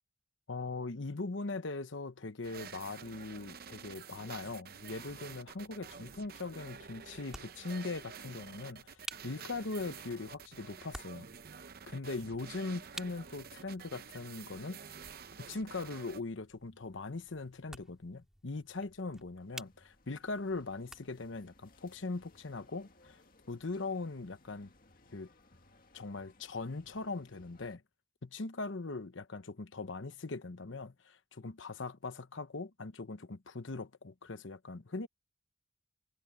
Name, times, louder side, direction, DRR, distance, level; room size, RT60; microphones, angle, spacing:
voice 1, 0.5-11.3 11.9-14.8 15.4-23.2 23.5-24.7 25.1-25.3 25.9-27.8 28.2-35.1, left 3 dB, 80° left, 1.0 m, -40 dB
sound 1, 2.4-16.2, right 6 dB, 50° right, 0.7 m, -50 dB
sound 2, 5.0-21.4, right 1 dB, 5° right, 3.6 m, -54 dB
sound 3, 19.4-27.8, left 2 dB, 45° left, 2.0 m, -64 dB
head